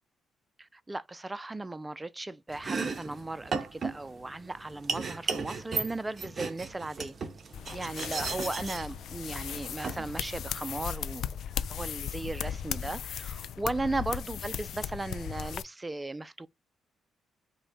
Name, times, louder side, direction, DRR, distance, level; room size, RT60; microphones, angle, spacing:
voice 1, 0.6-7.2 7.7-11.4 11.7-16.5, right 2 dB, 15° right, 0.4 m, -36 dB
Domestic sounds home sounds, 2.5-10.7, right 4 dB, 40° right, 0.8 m, -36 dB
sound 1, 7.5-15.6, left 9 dB, 70° left, 0.4 m, -37 dB
5.4 x 2.2 x 4.1 m
cardioid pair, 90°, 0 cm